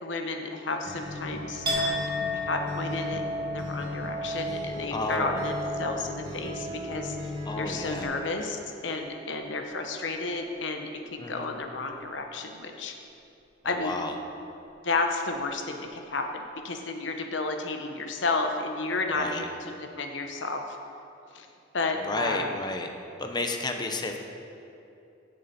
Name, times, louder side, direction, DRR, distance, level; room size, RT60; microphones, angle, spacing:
voice 1, 0.0-7.2 7.6-12.9 13.6-14.0 14.8-20.8 21.3-21.5 21.7-22.5, left 3 dB, 85° left, 4 dB, 1.0 m, -32 dB
Acoustic guitar, 0.8-8.0, left 2 dB, 85° right, 2.0 m, -37 dB
Chink clink, 1.6-9.3 9.7-10.3, equal, 25° right, 1.9 m, -35 dB
voice 2, 4.9-5.5 7.4-8.1 11.2-11.5 13.6-14.2 19.1-19.5 22.0-22.9 23.2-24.2, left 2 dB, 25° left, 4 dB, 0.8 m, -32 dB
15.5 x 6.8 x 4.3 m, 2.7 s
head